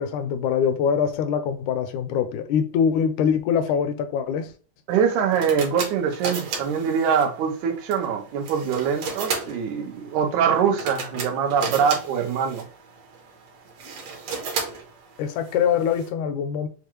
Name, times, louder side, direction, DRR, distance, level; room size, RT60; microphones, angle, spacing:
voice 1, 0.0-4.5 15.2-16.7, left 7 dB, 85° left, 2.1 m, -23 dB
sound 1, 4.9-16.1, right 5 dB, 65° right, 2.1 m, -35 dB
voice 2, 4.9-12.6, right 7 dB, 85° right, 2.4 m, -23 dB
6.9 x 2.4 x 3.0 m
omnidirectional pair, 3.4 m